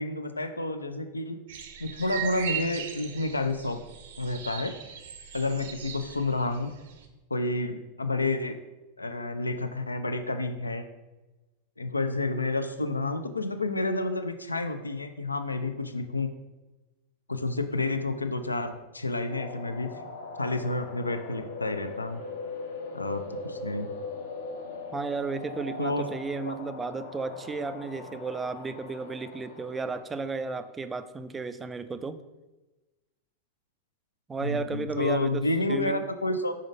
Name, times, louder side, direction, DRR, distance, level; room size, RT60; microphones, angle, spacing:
voice 1, 0.0-1.4 1.8-3.8 4.2-4.7 5.3-6.7 7.3-8.6 9.0-10.8 11.8-16.3 17.3-19.9 20.4-22.2 22.9-23.9 25.8-26.1 26.5-26.6 34.4-36.6, left 2 dB, 80° left, 8 dB, 0.5 m, -30 dB
sound 1, 1.5-7.0, right 8 dB, 60° right, 0.7 m, -39 dB
sound 2, 19.3-30.5, left 3 dB, 60° left, 0.8 m, -40 dB
voice 2, 24.9-32.2 34.3-36.0, right 4 dB, 15° right, 12 dB, 0.3 m, -33 dB
5.3 x 3.8 x 5.1 m, 1.1 s
figure-of-eight pair, 90°, 0 cm